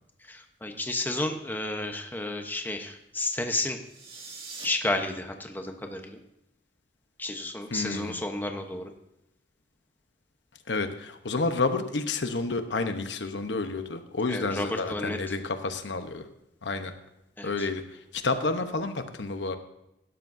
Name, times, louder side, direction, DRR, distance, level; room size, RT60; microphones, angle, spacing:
voice 1, 0.3-3.8 4.6-6.2 7.2-8.9 14.3-15.2 17.4-17.7, left 2 dB, 10° left, 4 dB, 1.0 m, -32 dB
sound 1, 3.8-4.7, right 4 dB, 30° right, 2.2 m, -42 dB
voice 2, 7.7-8.2 10.7-16.2 16.6-16.9 17.4-17.8 18.1-19.6, left 3 dB, 80° left, 8 dB, 1.0 m, -30 dB
16.5 x 12.0 x 2.7 m, 0.87 s
head